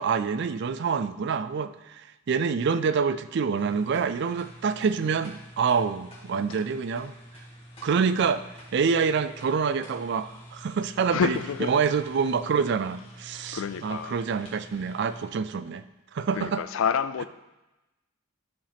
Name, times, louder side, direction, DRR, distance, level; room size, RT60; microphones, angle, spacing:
voice 1, 0.0-7.1 7.8-8.4 8.7-15.8 16.1-16.6, right 5 dB, 55° right, 13 dB, 0.4 m, -26 dB
sound 1, 3.6-15.3, equal, 25° left, 1.9 m, -48 dB
voice 2, 11.1-11.7 13.5-14.2 16.3-17.3, left 6 dB, 65° left, 13 dB, 0.4 m, -28 dB
13.0 x 4.9 x 3.5 m, 1.0 s
head